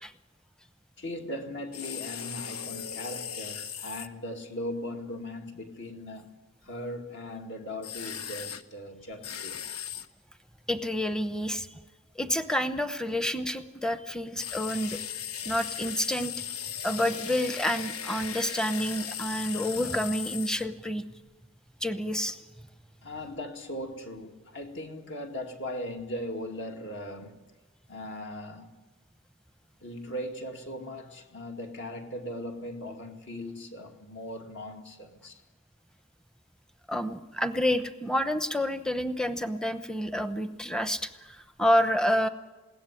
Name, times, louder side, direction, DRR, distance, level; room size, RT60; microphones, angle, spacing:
voice 1, 1.0-6.3 6.6-9.7 23.0-27.4 27.9-28.7 29.8-35.4, left 1 dB, 55° left, 2.4 m, -39 dB
Masonry Drill, 1.7-4.1 7.8-8.6 9.2-10.1 14.4-20.7, left 8 dB, 90° left, 1.0 m, -37 dB
voice 2, 10.7-11.7 12.1-15.0 15.4-16.3 16.8-21.0 21.8-22.4 36.9-42.3, equal, 5° left, 0.8 m, -29 dB
21.0 x 17.0 x 9.9 m
head